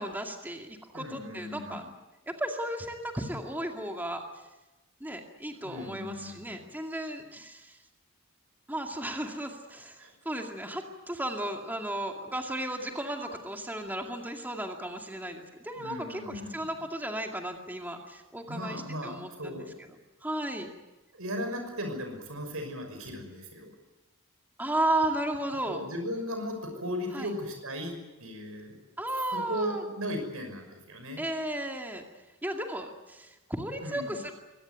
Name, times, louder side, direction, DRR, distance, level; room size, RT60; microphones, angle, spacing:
voice 1, 0.0-1.8 2.3-4.2 5.0-7.8 8.7-19.7 20.2-20.7 24.6-25.8 27.1-27.3 29.0-29.8 31.2-32.0 32.4-34.3, right 1 dB, 10° right, 3 dB, 2.2 m, -34 dB
voice 2, 0.9-1.9 5.6-6.7 10.0-10.1 15.8-16.7 18.5-19.7 21.1-23.7 25.7-28.8 29.3-31.2 33.8-34.2, equal, 90° right, 5 dB, 5.9 m, -37 dB
23.5 x 18.0 x 9.3 m, 1.1 s
head